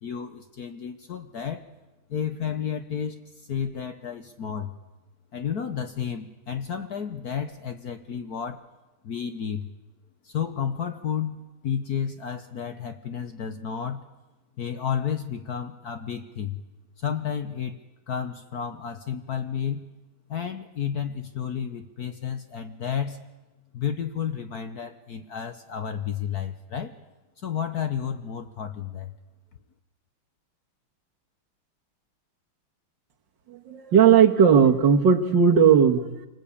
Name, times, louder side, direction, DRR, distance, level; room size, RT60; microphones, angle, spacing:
voice 1, 0.0-1.7 2.1-4.7 5.3-8.6 9.0-9.7 10.2-14.1 14.6-16.6 17.0-17.8 18.1-19.9 20.3-23.3 23.7-26.9 27.4-29.1, left 8 dB, 55° left, 8 dB, 1.3 m, -31 dB
voice 2, 33.5-36.3, right 7 dB, 60° right, 3 dB, 2.3 m, -17 dB
27.0 x 20.0 x 8.6 m, 1.1 s
omnidirectional pair, 2.3 m